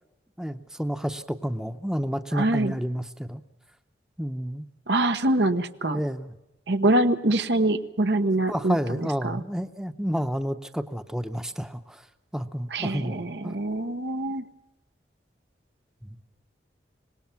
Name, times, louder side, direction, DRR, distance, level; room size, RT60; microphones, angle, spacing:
voice 1, 0.4-3.4 4.2-4.7 5.8-6.3 8.5-12.1 12.3-13.6 16.0-16.2, equal, 5° right, 9 dB, 0.8 m, -30 dB
voice 2, 2.3-2.7 4.9-6.0 6.7-9.4 12.7-14.4, right 2 dB, 80° right, 9 dB, 1.1 m, -24 dB
25.0 x 20.0 x 5.8 m, 0.94 s
head